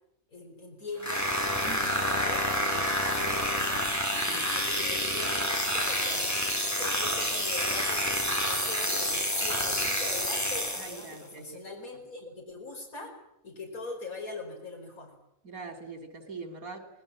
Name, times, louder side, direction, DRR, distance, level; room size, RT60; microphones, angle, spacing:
voice 1, 0.3-1.3 1.6-2.9 3.1-3.8 4.3-6.4 6.8-8.1 8.4-13.1 13.4-15.1, left 3 dB, 85° left, 0 dB, 5.6 m, -42 dB
sound 1, 1.0-11.2, equal, 10° left, 3.3 m, -28 dB
voice 2, 1.7-2.0 4.2-4.5 10.8-11.6 15.4-16.9, right 4 dB, 85° right, 6 dB, 4.1 m, -43 dB
25.5 x 20.0 x 8.7 m, 0.77 s
omnidirectional pair, 1.5 m